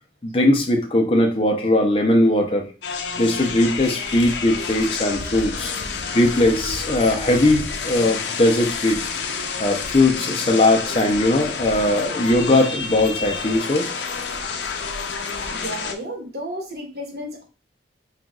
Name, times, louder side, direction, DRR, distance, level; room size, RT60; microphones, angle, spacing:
voice 1, 0.2-2.6 3.2-5.7 6.1-9.0 9.6-13.9, left 1 dB, 30° left, 3 dB, 0.6 m, -19 dB
sound 1, 2.8-15.9, left 5 dB, 80° left, 0.5 m, -29 dB
voice 2, 15.5-17.4, equal, 60° right, 2 dB, 1.1 m, -33 dB
5.6 x 2.4 x 2.3 m, 0.32 s
head